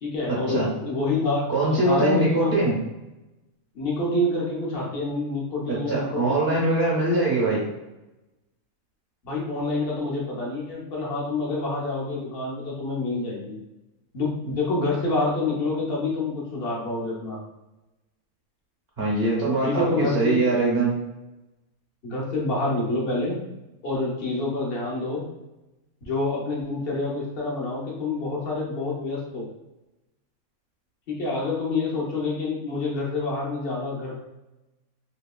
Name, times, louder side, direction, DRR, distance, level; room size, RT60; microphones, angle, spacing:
voice 1, 0.0-2.5 3.7-6.6 9.2-13.6 14.1-17.4 19.6-20.5 22.0-23.4 23.8-25.3 26.0-29.5 31.1-34.2, left 2 dB, 50° left, -4 dB, 0.9 m, -27 dB
voice 2, 1.5-2.7 5.7-7.6 19.0-20.9, right 2 dB, 55° right, -5 dB, 0.9 m, -22 dB
2.9 x 2.7 x 2.2 m, 0.97 s
omnidirectional pair, 1.5 m